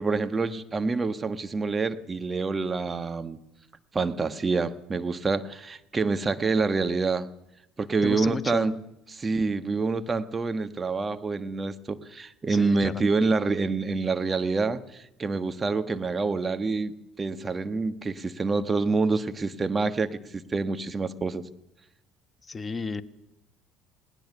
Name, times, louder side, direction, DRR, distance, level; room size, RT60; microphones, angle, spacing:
voice 1, 0.0-3.4 3.9-7.3 7.8-8.8 9.1-21.5, right 4 dB, 30° right, 11 dB, 1.4 m, -27 dB
voice 2, 8.0-8.7 12.5-12.9 22.4-23.0, left 4 dB, 25° left, 12 dB, 1.3 m, -33 dB
20.0 x 19.0 x 6.9 m, 0.86 s
hypercardioid pair, 65°, 0 cm